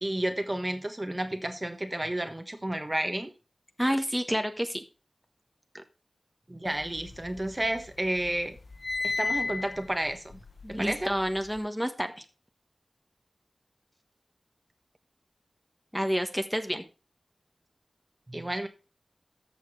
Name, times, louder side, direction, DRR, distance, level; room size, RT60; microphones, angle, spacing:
voice 1, 0.0-3.3 6.5-8.6 9.0-10.4 10.7-11.1 18.3-18.7, right 1 dB, 25° right, 1.2 m, -31 dB
voice 2, 3.8-4.8 5.7-5.8 10.6-12.2 15.9-16.8, equal, ahead, 1.2 m, -29 dB
sound 1, 6.8-7.9 8.2-11.6, left 3 dB, 55° left, 0.7 m, -34 dB
13.5 x 6.8 x 3.2 m
wide cardioid pair, 85°, 0 cm